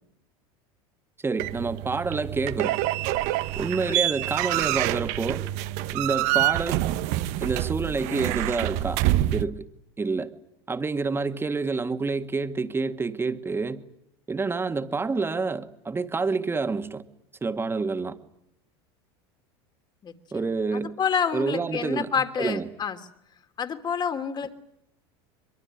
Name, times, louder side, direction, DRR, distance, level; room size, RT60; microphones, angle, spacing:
voice 1, 1.2-2.8 3.6-5.4 5.9-6.9 7.4-9.0 9.3-9.7 10.0-10.3 10.7-13.8 14.3-17.0 17.4-18.2 20.3-20.9 21.3-22.1 22.4-22.7, right 4 dB, 15° right, 1.9 m, -28 dB
sound 1, 1.4-9.4, right 15 dB, 65° right, 1.0 m, -26 dB
voice 2, 20.0-20.4 20.7-23.0 23.6-24.6, left 7 dB, 35° left, 2.8 m, -28 dB
23.5 x 23.0 x 10.0 m
hypercardioid pair, 95°, 13 cm